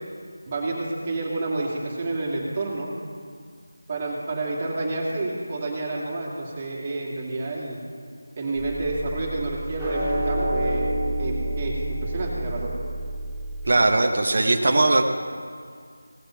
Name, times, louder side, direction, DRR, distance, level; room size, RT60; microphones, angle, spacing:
voice 1, 0.5-2.9 3.9-7.8 8.4-10.9 11.2-12.7, right 2 dB, 30° right, -3 dB, 2.5 m, -29 dB
sound 1, 8.5-13.7, right 1 dB, ahead, 2.4 m, -29 dB
voice 2, 13.6-15.0, right 2 dB, 50° right, 3 dB, 0.9 m, -19 dB
17.5 x 6.8 x 5.8 m, 2.1 s
figure-of-eight pair, 165°, 0 cm